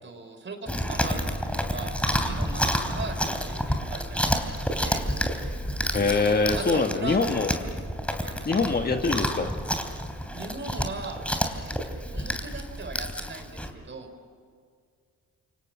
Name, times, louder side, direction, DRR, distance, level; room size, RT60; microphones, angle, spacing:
voice 1, 0.0-5.0 6.5-7.6 8.2-8.6 10.3-11.2 11.5-11.7 12.1-14.1, right 3 dB, 40° right, 6 dB, 4.7 m, -39 dB
Chewing mastication, 0.7-13.7, equal, 5° left, 3.2 m, -29 dB
voice 2, 5.9-7.5 8.4-9.5, left 4 dB, 30° left, 5 dB, 1.7 m, -24 dB
28.5 x 25.0 x 6.2 m, 2.1 s
cardioid pair, 90°, 30 cm